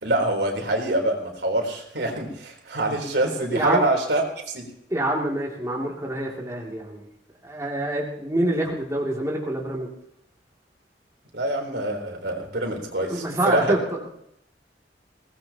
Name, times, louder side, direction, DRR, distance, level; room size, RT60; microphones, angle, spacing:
voice 1, 0.0-4.7 11.3-13.6, right 1 dB, 75° right, 1 dB, 3.9 m, -25 dB
voice 2, 3.5-3.8 4.9-7.0 7.4-9.9 13.1-13.8, right 1 dB, 20° right, -3 dB, 2.8 m, -26 dB
21.5 x 18.5 x 3.0 m, 0.75 s
head